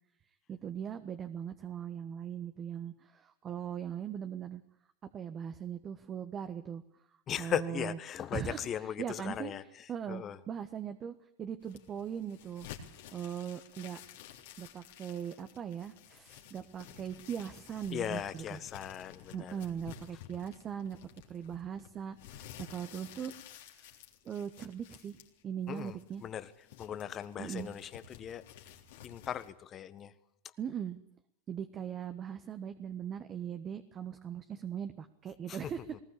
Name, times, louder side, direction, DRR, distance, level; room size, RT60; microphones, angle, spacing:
voice 1, 0.5-4.6 5.1-6.8 7.4-8.0 8.3-9.5 9.9-12.7 13.1-14.0 14.6-18.6 19.3-21.0 21.3-24.0 24.2-25.2 25.4-26.2 27.4-27.7 30.6-31.0 31.5-35.8, right 8 dB, 35° right, 9 dB, 1.4 m, -40 dB
voice 2, 7.3-10.4 17.9-19.5 25.7-26.5 26.8-28.4 29.0-30.1 35.5-35.6 35.9-36.0, left 9 dB, 35° left, 12 dB, 1.5 m, -38 dB
sound 1, 11.6-29.5, left 9 dB, 75° left, 3.5 m, -53 dB
19.5 x 19.5 x 8.6 m, 0.72 s
hypercardioid pair, 100°, 0 cm